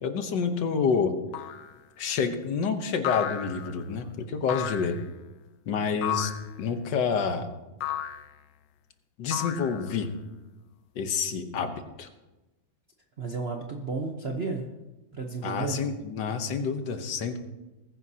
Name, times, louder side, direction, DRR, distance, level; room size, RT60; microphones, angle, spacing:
voice 1, 0.0-1.1 2.0-5.0 5.7-6.3 6.6-7.5 9.2-10.1 10.9-12.1 15.4-17.4, left 5 dB, 65° left, 7 dB, 1.6 m, -28 dB
sound 1, 1.3-1.7 3.0-3.8 4.5-5.1 6.0-6.5 7.8-8.3 9.3-10.1, left 12 dB, 85° left, 1.5 m, -33 dB
voice 2, 13.2-14.7 15.1-15.8, right 4 dB, 50° right, 1 dB, 0.7 m, -32 dB
20.0 x 10.0 x 2.8 m, 1.1 s
omnidirectional pair, 2.2 m